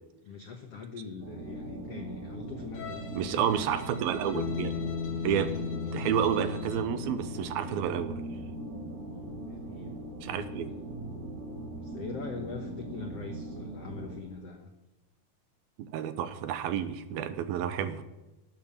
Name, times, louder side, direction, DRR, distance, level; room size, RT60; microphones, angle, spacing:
voice 1, 0.2-3.5 9.1-9.9 10.3-10.6 11.7-14.7, left 5 dB, 90° left, 5 dB, 1.3 m, -43 dB
sound 1, 1.2-14.2, right 2 dB, 50° right, 3.2 m, -40 dB
Bowed string instrument, 2.7-7.0, left 7 dB, 55° left, 1.5 m, -48 dB
voice 2, 3.1-4.7 5.2-5.6 5.9-8.2 10.2-10.7 15.8-18.0, right 9 dB, 75° right, 11 dB, 2.6 m, -30 dB
Bass guitar, 4.4-8.7, left 7 dB, 75° left, 2.0 m, -36 dB
13.0 x 9.2 x 8.8 m, 1.0 s
omnidirectional pair, 4.6 m